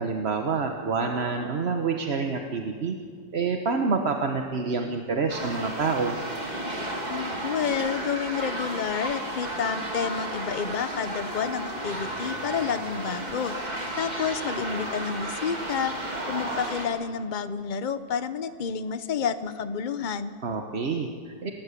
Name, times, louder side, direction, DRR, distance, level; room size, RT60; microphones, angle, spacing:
voice 1, 0.0-2.9 3.3-6.2 20.4-21.5, right 4 dB, 40° right, 4 dB, 1.2 m, -27 dB
sound 1, 5.3-16.9, right 1 dB, 20° right, 2.6 m, -33 dB
voice 2, 7.1-13.5 14.0-20.3, left 7 dB, 45° left, 12 dB, 0.6 m, -30 dB
29.0 x 13.5 x 8.4 m, 2.1 s
omnidirectional pair, 2.0 m